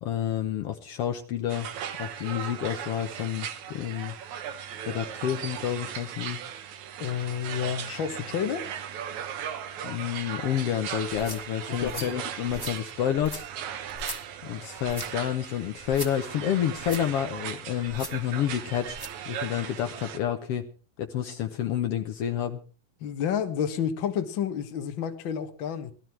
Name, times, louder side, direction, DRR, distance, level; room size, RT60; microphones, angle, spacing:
voice 1, 0.0-1.7 2.0-4.1 4.9-6.4 9.8-13.4 14.4-19.0 19.2-20.7 21.0-22.6, left 10 dB, 85° left, 1.3 m, -29 dB
sound 1, 1.5-20.2, right 9 dB, 65° right, 2.2 m, -38 dB
voice 2, 7.0-8.7 11.8-12.1 23.0-25.9, left 8 dB, 60° left, 1.2 m, -30 dB
sound 2, 11.0-19.2, equal, 10° right, 1.2 m, -42 dB
19.0 x 12.5 x 4.5 m
omnidirectional pair, 4.1 m